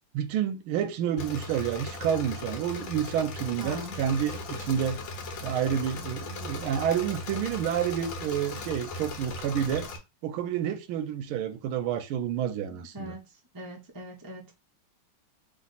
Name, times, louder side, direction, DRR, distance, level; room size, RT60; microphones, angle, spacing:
voice 1, 0.1-5.0 5.4-9.9 10.2-13.1, right 9 dB, 85° right, 1.4 m, -29 dB
Engine / Mechanisms, 1.2-10.0, left 2 dB, 70° left, 1.5 m, -38 dB
voice 2, 3.6-3.9 12.7-13.2 13.5-14.5, equal, 25° right, 0.4 m, -41 dB
3.3 x 3.0 x 4.0 m
omnidirectional pair, 2.3 m